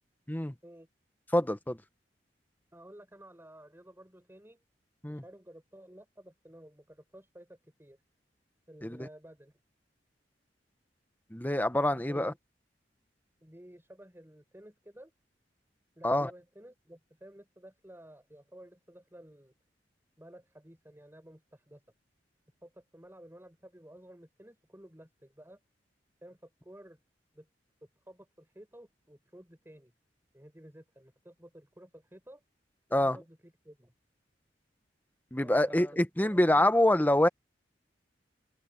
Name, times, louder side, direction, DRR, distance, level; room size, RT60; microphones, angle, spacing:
voice 1, 1.3-1.8 5.0-5.2 8.8-9.1 11.3-12.3 16.0-16.3 32.9-33.2 35.3-37.3, left 1 dB, 10° left, 1.0 m, -26 dB
voice 2, 2.7-4.6 5.1-8.0 8.7-9.6 11.9-12.4 13.4-15.1 16.0-19.6 20.2-21.8 22.6-25.6 26.2-27.0 27.3-27.5 27.8-29.9 30.3-32.4 32.9-33.9 35.4-36.5, right 1 dB, 15° right, 7.3 m, -53 dB
open air
head